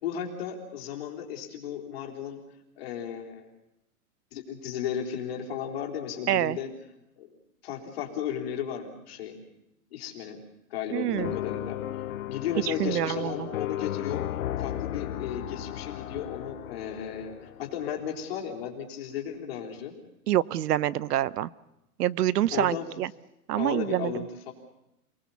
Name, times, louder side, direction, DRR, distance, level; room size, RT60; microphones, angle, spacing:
voice 1, 0.0-2.4 2.8-3.5 4.3-6.7 7.2-7.3 7.6-9.3 9.9-10.4 10.7-11.8 12.3-14.2 14.6-19.9 22.5-22.8 23.6-24.5, left 8 dB, 40° left, 0 dB, 3.7 m, -34 dB
voice 2, 10.9-11.3 12.7-13.5 20.3-21.5 22.0-23.1 23.5-24.1, right 13 dB, 90° right, 20 dB, 0.8 m, -26 dB
sound 1, 11.2-18.3, left 12 dB, 60° left, 0.8 m, -35 dB
28.5 x 19.5 x 7.1 m, 0.87 s
hypercardioid pair, 180°, 45 cm